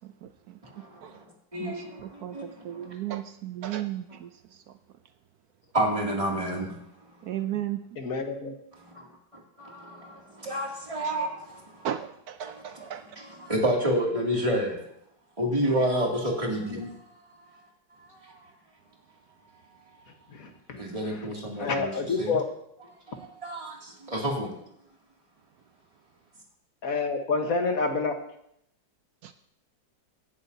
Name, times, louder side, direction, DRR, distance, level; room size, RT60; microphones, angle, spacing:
voice 1, 0.0-0.6 1.0-1.2 1.6-4.3 7.2-7.8 11.0-11.2 11.8-13.0 26.9-27.1 29.2-29.3, right 11 dB, 70° right, 10 dB, 0.9 m, -35 dB
voice 2, 1.5-1.8 2.3-2.4 5.7-6.7 9.6-10.1 10.4-11.3 12.8-12.9 13.2-14.7 15.4-16.8 20.8-21.9 22.2-22.4 23.4-23.7 24.1-24.5, right 1 dB, 20° right, -2 dB, 2.6 m, -28 dB
voice 3, 8.0-8.5 16.7-16.9 20.7-20.8 21.6-22.4 26.8-28.2, left 4 dB, 55° left, 5 dB, 1.6 m, -27 dB
18.0 x 11.0 x 2.7 m, 0.73 s
omnidirectional pair, 2.0 m